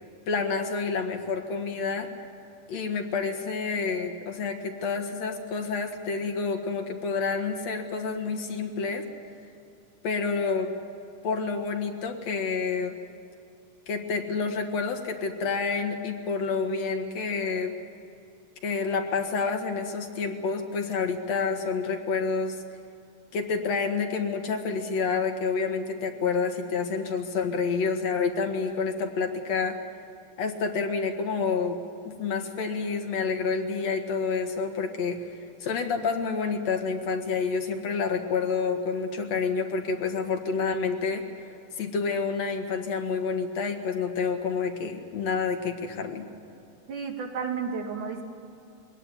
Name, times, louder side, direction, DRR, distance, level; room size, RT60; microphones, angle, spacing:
voice 1, 0.3-2.1 2.7-9.0 10.0-10.7 11.2-13.0 13.9-17.8 18.6-22.6 23.3-29.8 30.4-31.8 32.0-41.2 41.8-46.3, left 5 dB, 65° left, 4 dB, 2.8 m, -28 dB
voice 2, 46.9-48.2, right 6 dB, 90° right, 3 dB, 3.9 m, -32 dB
23.0 x 18.0 x 10.0 m, 2.8 s
omnidirectional pair, 3.4 m